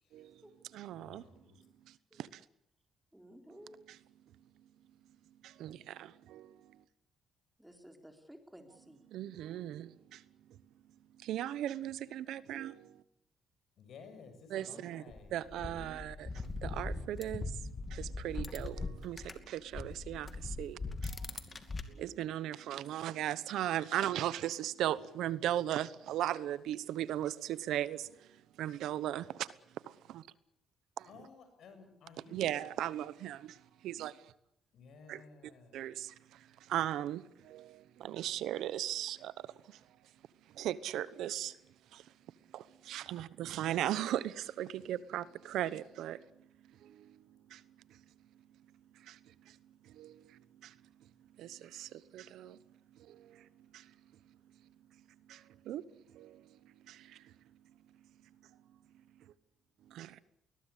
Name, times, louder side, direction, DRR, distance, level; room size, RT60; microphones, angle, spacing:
voice 1, 0.1-0.4 0.7-1.2 1.9-2.4 5.4-6.6 9.1-10.2 11.2-13.0 14.5-15.0 15.3-16.3 16.6-17.6 17.9-21.3 21.9-28.3 28.6-29.5 29.9-30.2 31.0-31.1 32.3-34.3 35.1-39.8 40.5-41.6 41.9-42.0 42.5-46.2 46.8-47.2 47.5-47.6 49.0-49.2 49.5-49.6 49.8-50.7 51.4-52.6 53.0-53.5 53.7-53.9 55.3-55.8 56.1-56.5 56.9-57.3 59.9-60.2, right 12 dB, 85° right, 1.0 m, -38 dB
voice 2, 0.9-1.6 13.8-15.3 16.4-17.2 31.1-32.7 34.7-35.8, left 4 dB, 70° left, 6.9 m, -55 dB
voice 3, 3.1-3.8 7.6-9.1 14.5-14.9 15.5-16.0, equal, 5° right, 4.0 m, -55 dB
sound 1, 15.1-19.4 19.7-21.8, left 3 dB, 30° left, 2.5 m, -40 dB
21.0 x 20.5 x 8.4 m
cardioid pair, 90°, 0 cm